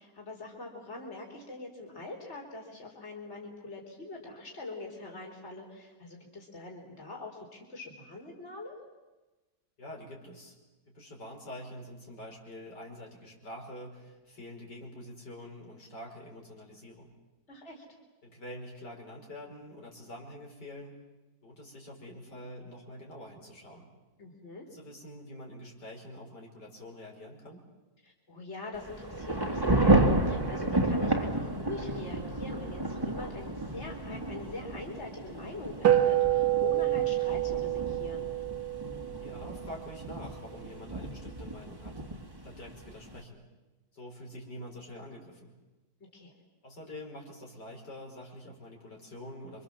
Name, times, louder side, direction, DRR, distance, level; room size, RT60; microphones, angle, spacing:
voice 1, 0.0-8.8 17.5-17.8 24.2-24.7 28.0-38.3 46.0-46.3, left 2 dB, 40° left, 0 dB, 4.4 m, -43 dB
voice 2, 9.8-10.6 10.9-17.1 18.2-21.0 21.4-23.9 24.7-27.6 39.2-42.0 42.4-43.4 43.9-45.5 46.6-49.6, left 1 dB, 75° left, 0 dB, 5.9 m, -46 dB
Thunder / Rain, 28.7-43.2, right 2 dB, 15° right, 1.8 m, -31 dB
sound 1, 35.8-40.5, right 13 dB, 70° right, 2.1 m, -28 dB
28.5 x 25.0 x 7.4 m, 1.1 s
omnidirectional pair, 1.8 m